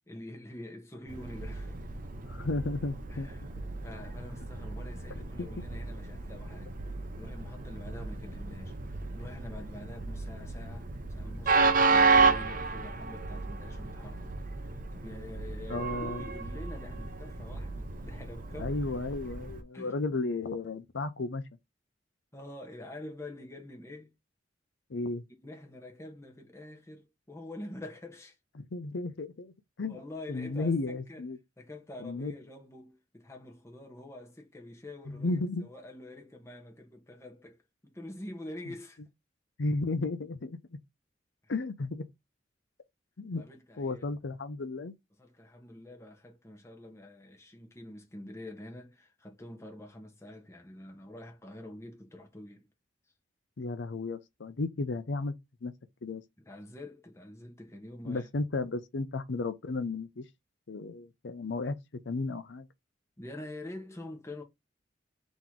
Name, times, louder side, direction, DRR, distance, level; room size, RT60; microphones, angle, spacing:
voice 1, 0.1-1.8 3.1-14.3 14.6-18.7 19.7-20.0 22.3-24.1 25.4-28.4 29.9-31.2 31.6-39.0 41.4-41.5 43.3-44.2 45.2-52.7 56.4-58.3 63.2-64.4, left 1 dB, 15° left, 1.1 m, -46 dB
Train, 1.1-19.6, right 4 dB, 45° right, 0.7 m, -32 dB
voice 2, 2.3-3.3 5.4-5.5 15.7-16.2 18.6-21.4 24.9-25.2 28.6-29.5 29.8-30.0 30.3-31.4 32.0-32.3 35.1-35.7 39.6-40.6 41.5-42.0 43.2-43.4 43.8-44.9 53.6-55.3 55.6-55.7 56.0-56.2 58.0-60.2 60.7-61.8 62.1-62.7, left 3 dB, 70° left, 0.6 m, -33 dB
3.8 x 3.0 x 3.7 m
head